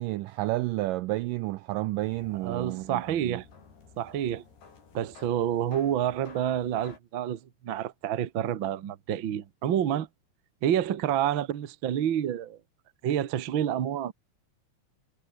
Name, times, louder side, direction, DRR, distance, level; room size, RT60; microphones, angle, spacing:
voice 1, 0.0-3.4, right 18 dB, 85° right, 1.9 m, -31 dB
sound 1, 2.0-7.0, left 5 dB, 80° left, 8.0 m, -53 dB
voice 2, 2.4-3.4 4.0-4.4 4.9-10.1 10.6-12.6 13.0-14.1, right 10 dB, 65° right, 1.2 m, -28 dB
omnidirectional pair, 4.5 m